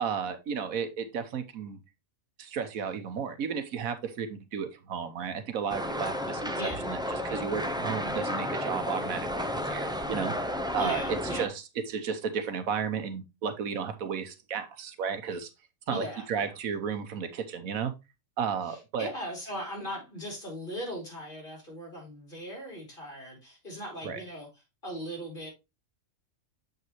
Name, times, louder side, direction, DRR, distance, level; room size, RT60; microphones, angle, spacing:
voice 1, 0.0-1.8 2.4-6.5 6.9-7.0 7.2-11.5 11.9-15.5 15.9-17.9 18.4-19.1 24.0-24.2, right 6 dB, 85° right, 1.4 m, -33 dB
sound 1, 5.7-11.5, equal, 5° right, 0.3 m, -32 dB
voice 2, 10.8-11.5 15.9-16.6 18.6-25.5, equal, 40° left, 3.2 m, -39 dB
7.1 x 5.3 x 3.0 m
omnidirectional pair, 1.4 m